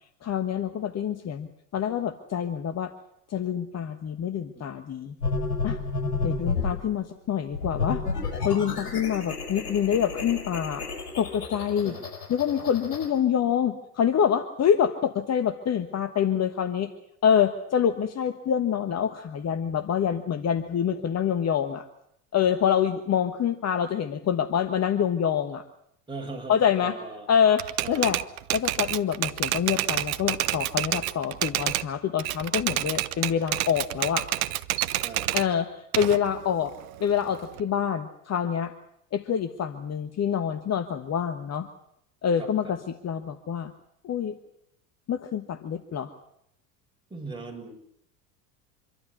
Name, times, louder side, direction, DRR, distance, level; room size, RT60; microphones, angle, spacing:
voice 1, 0.2-2.9 3.3-5.2 5.6-5.8 6.2-8.0 8.4-10.8 11.2-11.9 12.3-16.9 17.2-21.8 22.3-25.6 26.5-27.0 27.3-28.2 28.5-34.3 35.3-36.7 37.0-38.7 39.1-41.7 42.2-43.7 44.0-44.4 45.1-46.1, left 8 dB, 35° left, 9 dB, 1.4 m, -26 dB
sound 1, 5.2-6.8 7.5-13.1, left 4 dB, 85° left, 5.4 m, -31 dB
voice 2, 26.1-27.3 27.8-28.1 35.0-35.3 42.6-42.7 47.1-47.7, right 3 dB, 10° right, 0 dB, 6.9 m, -39 dB
Typewriter, 27.6-31.9 32.2-35.5 35.9-37.6, right 15 dB, 65° right, 0.9 m, -28 dB
26.0 x 12.5 x 9.8 m, 0.74 s
hypercardioid pair, 75°, 47 cm